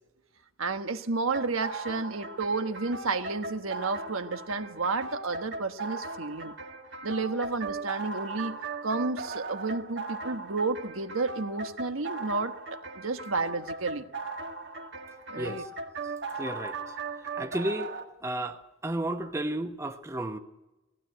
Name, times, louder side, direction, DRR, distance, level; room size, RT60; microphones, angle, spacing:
voice 1, 0.6-6.5 7.0-12.5 12.9-14.0 15.3-15.6, right 3 dB, 85° right, 7 dB, 1.3 m, -31 dB
sound 1, 1.3-18.0, right 3 dB, 55° right, 1.7 m, -38 dB
voice 2, 16.4-16.8 17.4-17.9 18.2-20.4, right 1 dB, 15° right, 7 dB, 1.0 m, -32 dB
18.0 x 15.5 x 9.2 m, 1.0 s
head